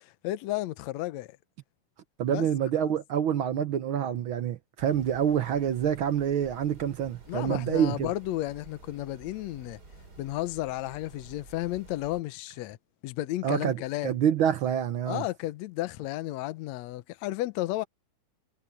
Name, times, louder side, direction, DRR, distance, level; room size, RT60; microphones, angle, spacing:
voice 1, 0.0-1.4 2.3-2.5 7.3-9.8 10.2-12.8 13.0-14.1 15.1-17.9, left 16 dB, 75° left, 2.0 m, -33 dB
voice 2, 2.2-8.1 13.4-13.8 14.0-15.2, right 9 dB, 70° right, 1.2 m, -27 dB
sound 1, 4.8-12.2, right 3 dB, 30° right, 3.5 m, -51 dB
omnidirectional pair, 3.4 m